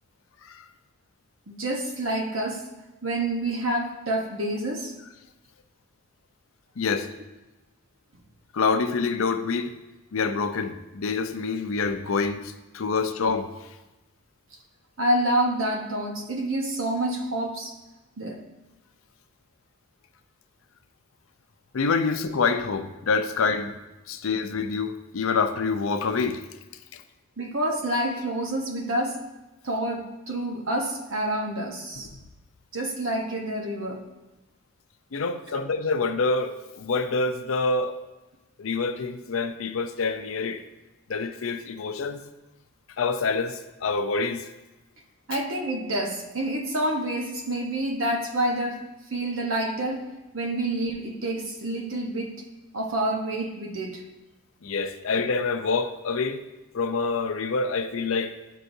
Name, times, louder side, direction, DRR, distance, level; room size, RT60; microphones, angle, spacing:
voice 1, 1.5-2.7 3.0-4.9 15.0-17.8 18.2-18.4 27.4-29.2 29.6-32.1 32.7-34.1 45.3-48.8 49.1-50.0 50.3-52.3 52.7-54.0, right 1 dB, 75° right, 3 dB, 1.1 m, -28 dB
voice 2, 6.8-7.1 8.5-9.8 10.1-13.5 21.7-23.7 24.1-26.4 26.9-27.0 32.0-32.1 35.1-38.0 38.6-40.6 41.1-42.2 43.0-44.5 45.3-45.4 54.6-56.4 56.7-58.3, left 4 dB, 80° left, 8 dB, 0.5 m, -26 dB
12.5 x 4.6 x 2.7 m, 1.1 s
head